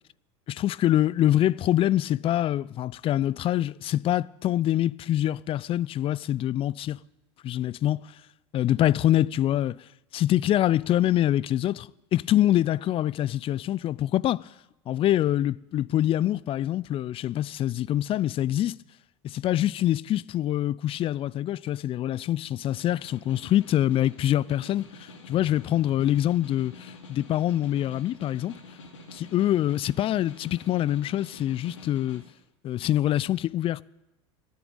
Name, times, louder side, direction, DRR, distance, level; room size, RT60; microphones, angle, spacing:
voice 1, 0.5-7.0 7.4-8.0 8.5-9.8 10.1-14.5 14.9-18.8 19.2-28.5 29.1-32.2 32.6-33.8, left 12 dB, 35° left, 0.4 m, -25 dB
Snare drum, 22.7-32.3, left 2 dB, 90° left, 2.5 m, -47 dB
13.5 x 10.0 x 8.9 m
hypercardioid pair, 90°, 15 cm